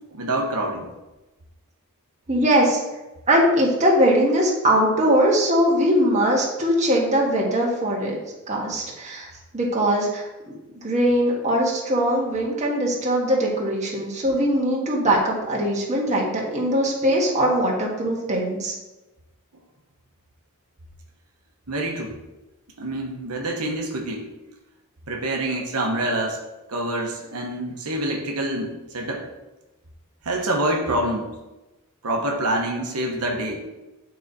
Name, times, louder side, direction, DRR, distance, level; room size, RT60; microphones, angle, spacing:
voice 1, 0.1-0.9 21.7-22.2 22.8-24.3 25.1-26.4 26.7-29.3 30.2-31.3 32.0-33.7, right 1 dB, 85° right, 1 dB, 1.0 m, -26 dB
voice 2, 2.3-2.8 3.3-8.2 8.5-9.3 9.5-10.2 10.8-18.7, equal, 30° right, -3 dB, 1.5 m, -21 dB
8.8 x 4.0 x 4.1 m, 1.0 s
head